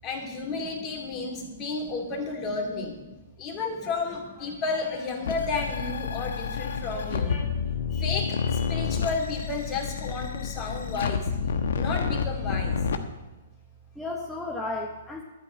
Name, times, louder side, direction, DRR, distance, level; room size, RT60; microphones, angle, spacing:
voice 1, 0.0-3.0 3.4-7.6 7.9-11.3 11.7-12.9, left 4 dB, 25° left, 1 dB, 2.5 m, -32 dB
voice 2, 1.1-1.7 2.8-3.1 6.1-7.8 10.4-10.8 11.5-11.7 13.9-15.2, left 2 dB, 5° left, -2 dB, 1.0 m, -39 dB
sound 1, 5.2-13.0, left 6 dB, 75° left, 1.0 m, -29 dB
12.0 x 5.3 x 8.6 m, 1.1 s
hypercardioid pair, 140°, 0 cm